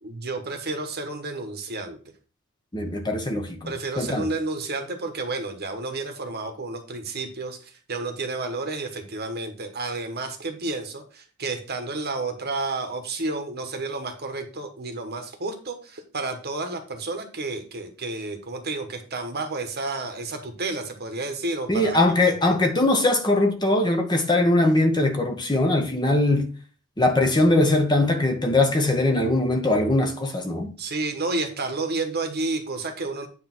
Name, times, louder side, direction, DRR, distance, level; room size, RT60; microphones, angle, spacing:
voice 1, 0.0-2.0 3.7-22.0 22.4-22.6 30.8-33.3, right 3 dB, 45° right, 1.4 m, -31 dB
voice 2, 2.7-4.3 21.7-26.5 27.0-30.7, left 2 dB, 20° left, 1.2 m, -21 dB
9.3 x 3.4 x 6.1 m
head